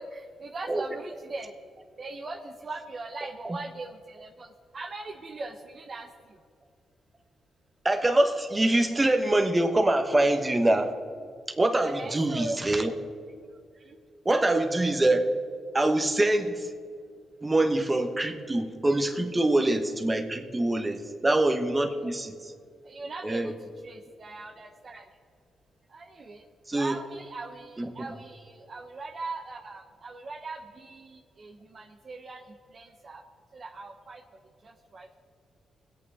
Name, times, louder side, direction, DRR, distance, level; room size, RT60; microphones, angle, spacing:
voice 1, 0.0-1.5 2.0-6.4 11.8-12.6 13.9-14.0 20.8-20.9 22.0-22.1 22.8-23.5 23.8-25.0 25.9-26.5 26.7-32.4 32.7-33.2 33.5-34.2 34.6-35.1, right 3 dB, 50° right, 3 dB, 0.9 m, -40 dB
voice 2, 7.8-10.9 11.6-12.9 14.2-15.3 15.7-16.7 17.4-22.3 23.2-23.5 26.7-27.0 27.8-27.9, right 1 dB, 25° right, 6 dB, 1.3 m, -24 dB
20.5 x 8.6 x 3.6 m, 2.3 s
cardioid pair, 65°, 0 cm